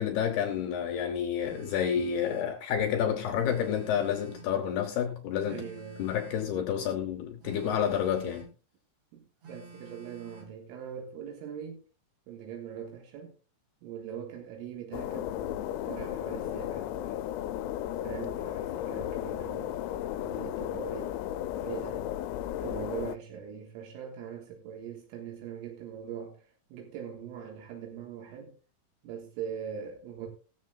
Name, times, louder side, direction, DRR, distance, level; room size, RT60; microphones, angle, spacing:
voice 1, 0.0-5.7 6.0-8.5, left 8 dB, 75° left, 2.5 m, -29 dB
Telephone, 1.4-2.6 3.4-4.6 5.4-6.6 7.4-8.6 9.4-10.6, right 4 dB, 40° right, 2.8 m, -50 dB
voice 2, 5.5-6.1 9.1-11.8 12.3-13.3 13.8-17.3 18.0-19.8 20.3-21.2 21.6-22.1 22.6-28.6 29.0-30.3, right 8 dB, 80° right, 4.0 m, -42 dB
sound 1, 14.9-23.2, left 12 dB, 90° left, 3.3 m, -34 dB
20.0 x 7.5 x 2.3 m
omnidirectional pair, 5.9 m